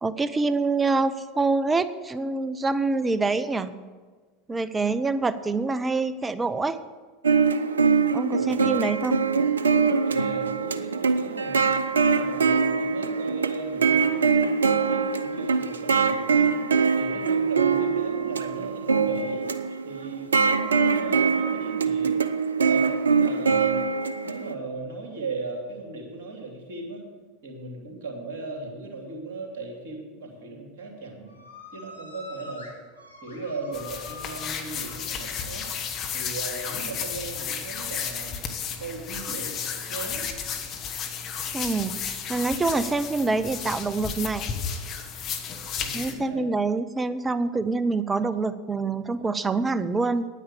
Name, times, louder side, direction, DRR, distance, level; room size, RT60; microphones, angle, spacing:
voice 1, 0.0-3.7 4.5-6.8 8.1-9.2 9.9-10.0 41.5-44.5 45.9-50.3, right 3 dB, 15° right, 14 dB, 0.6 m, -26 dB
sound 1, 7.2-24.5, right 5 dB, 80° right, 0.5 m, -23 dB
voice 2, 8.4-8.8 10.0-11.6 11.9-16.6 17.0-19.5 19.8-22.2 22.6-23.8 24.2-27.0 27.4-31.3 31.7-32.7 33.2-35.7 36.1-38.3 38.8-39.5 39.9-40.4 45.8-46.5, right 3 dB, 60° right, 1 dB, 2.9 m, -37 dB
sound 2, 31.3-36.1 36.4-36.8 37.1-38.0 38.6-40.9, left 2 dB, 85° left, 1.5 m, -46 dB
sound 3, 33.7-46.1, left 7 dB, 40° left, 1.3 m, -33 dB
9.6 x 9.3 x 6.9 m, 1.4 s
figure-of-eight pair, 80°, 0 cm